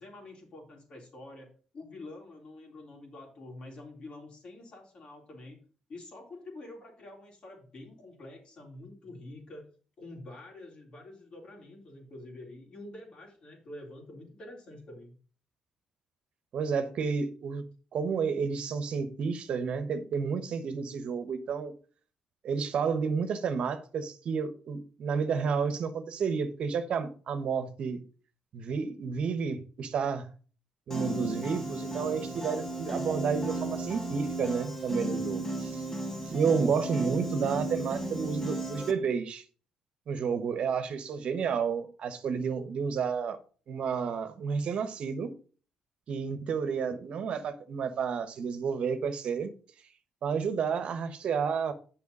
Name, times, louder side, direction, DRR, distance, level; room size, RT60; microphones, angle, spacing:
voice 1, 0.0-5.6 5.9-9.7 10.0-15.1, left 2 dB, 55° left, 3.8 m, -47 dB
voice 2, 16.5-17.6 17.9-21.7 22.4-28.0 28.5-30.3 30.9-35.8 36.2-39.4 40.1-43.4 43.7-45.3 46.1-49.5 50.2-51.7, right 6 dB, 65° right, 1.1 m, -31 dB
Piano, 30.9-38.9, right 1 dB, 20° left, 2.0 m, -35 dB
7.2 x 5.7 x 5.4 m
supercardioid pair, 65°, 2 cm